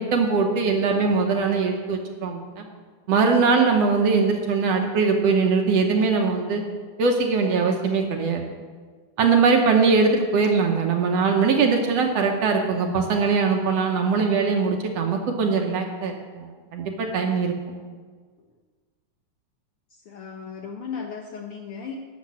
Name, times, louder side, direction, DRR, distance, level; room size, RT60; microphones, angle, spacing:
voice 1, 0.1-2.6 3.1-6.6 7.0-8.4 9.2-16.5 16.7-17.5, right 4 dB, 65° right, 3 dB, 1.9 m, -21 dB
voice 2, 19.9-21.9, left 6 dB, 65° left, 1 dB, 1.4 m, -36 dB
11.5 x 6.6 x 8.7 m, 1.5 s
omnidirectional pair, 3.5 m